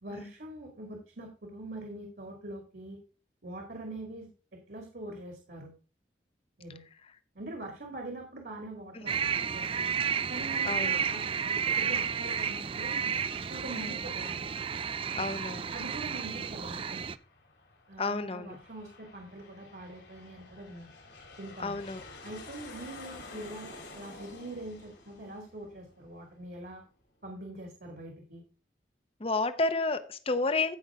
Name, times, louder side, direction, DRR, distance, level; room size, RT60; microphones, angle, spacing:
voice 1, 0.0-3.0 3.4-4.3 4.7-5.7 6.6-6.8 7.4-9.1 9.5-9.9 10.3-13.0 13.5-14.5 15.6-17.0 17.9-20.9 21.4-21.8 22.2-26.8 27.2-28.4, right 1 dB, 60° right, 2 dB, 2.1 m, -43 dB
sound 1, 9.1-17.2, right 7 dB, 30° right, 0.4 m, -32 dB
voice 2, 10.6-11.0 13.7-14.0 15.1-15.7 18.0-18.6 21.6-22.0 29.2-30.8, left 3 dB, 30° left, 12 dB, 0.8 m, -31 dB
Aircraft, 16.0-26.7, left 3 dB, 80° left, 3.4 m, -51 dB
15.0 x 5.5 x 3.6 m, 0.34 s
head